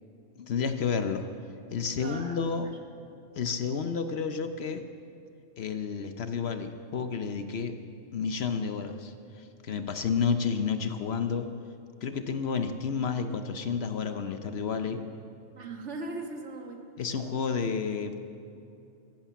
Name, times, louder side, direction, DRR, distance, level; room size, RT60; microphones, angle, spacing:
voice 1, 0.4-1.3 1.7-2.7 3.4-4.8 5.6-7.8 8.1-11.5 12.0-15.1 17.0-18.2, left 6 dB, 60° left, 8 dB, 0.9 m, -31 dB
voice 2, 1.9-2.8 15.5-16.9, right 2 dB, 60° right, 3 dB, 1.6 m, -39 dB
13.5 x 11.5 x 7.2 m, 2.6 s
omnidirectional pair, 1.3 m